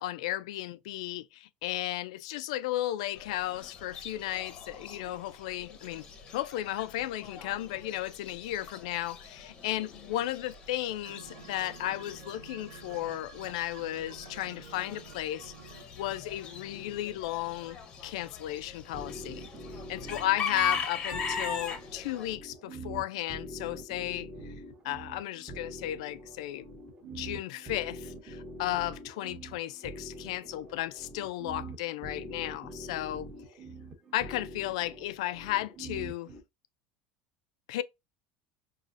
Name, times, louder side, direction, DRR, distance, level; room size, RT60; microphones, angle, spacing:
voice 1, 0.0-6.1 6.3-19.4 19.9-24.5 24.8-26.7 27.1-33.3 34.1-36.3 37.7-37.8, left 14 dB, 85° left, 0.3 m, -34 dB
Chicken rooster / Bird, 3.2-22.3, left 5 dB, 25° left, 0.6 m, -41 dB
sound 1, 11.0-16.2, right 8 dB, 80° right, 0.8 m, -51 dB
sound 2, 18.9-36.4, right 1 dB, 20° right, 0.7 m, -45 dB
4.6 x 2.4 x 2.5 m
cardioid pair, 175°, 3 cm